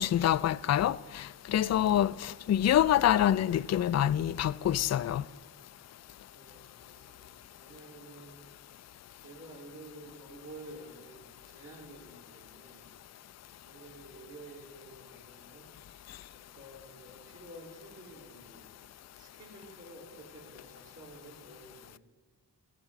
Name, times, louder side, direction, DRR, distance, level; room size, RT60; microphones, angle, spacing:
voice 1, 0.0-5.2, left 11 dB, 40° left, 0.4 m, -26 dB
voice 2, 6.3-8.4 9.2-12.9 13.6-15.7 16.3-18.7 19.1-22.0, right 1 dB, 45° right, 3.2 m, -51 dB
12.5 x 5.3 x 9.1 m
cardioid pair, 40°, 41 cm